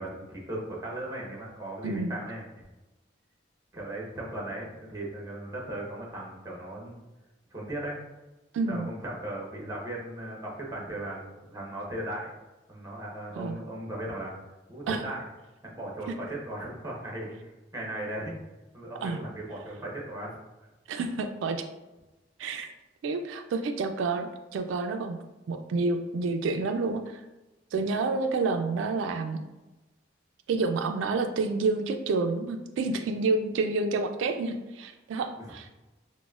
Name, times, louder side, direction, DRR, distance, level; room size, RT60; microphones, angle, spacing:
voice 1, 0.0-2.7 3.7-6.9 7.5-8.0 8.7-12.3 12.7-14.3 14.7-15.2 15.6-18.3 18.7-20.4 35.3-35.6, right 1 dB, 15° right, -2 dB, 0.9 m, -37 dB
voice 2, 1.8-2.2 8.5-8.9 13.3-13.6 14.9-15.0 19.0-19.2 20.9-21.6 22.4-22.7 23.0-25.2 25.5-27.2 27.7-29.4 30.5-35.7, right 3 dB, 90° right, 6 dB, 0.3 m, -29 dB
5.9 x 2.1 x 2.3 m, 1.1 s
head